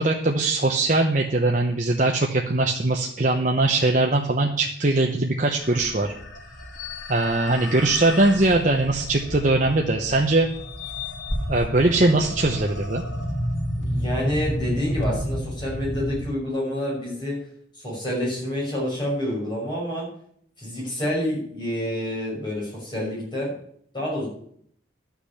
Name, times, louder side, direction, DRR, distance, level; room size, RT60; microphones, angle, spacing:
voice 1, 0.0-6.1 7.1-10.5 11.5-13.0, right 2 dB, 40° right, 1 dB, 0.9 m, -21 dB
sound 1, 5.6-16.2, equal, 80° left, 2.8 m, -31 dB
voice 2, 13.8-17.4 17.8-20.1 20.6-23.5 23.9-24.3, left 1 dB, 25° left, -5 dB, 6.0 m, -28 dB
12.0 x 6.0 x 8.4 m, 0.65 s
head